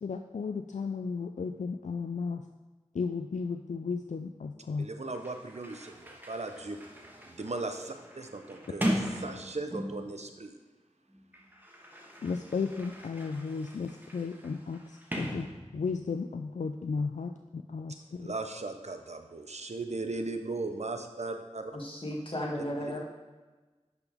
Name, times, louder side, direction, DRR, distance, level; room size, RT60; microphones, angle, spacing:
voice 1, 0.0-2.5 2.9-4.9 12.2-18.3, left 5 dB, 85° left, 6 dB, 0.4 m, -34 dB
Sliding door, 4.8-4.9 5.1-10.2 11.1-16.1, equal, 15° right, 1.4 m, -39 dB
voice 2, 4.8-6.8 7.3-10.6 18.2-21.8 22.8-23.0, right 3 dB, 65° right, 6 dB, 0.8 m, -37 dB
voice 3, 21.7-23.0, equal, 45° left, -3 dB, 1.9 m, -34 dB
10.5 x 5.4 x 3.5 m, 1.3 s
wide cardioid pair, 40°, 12 cm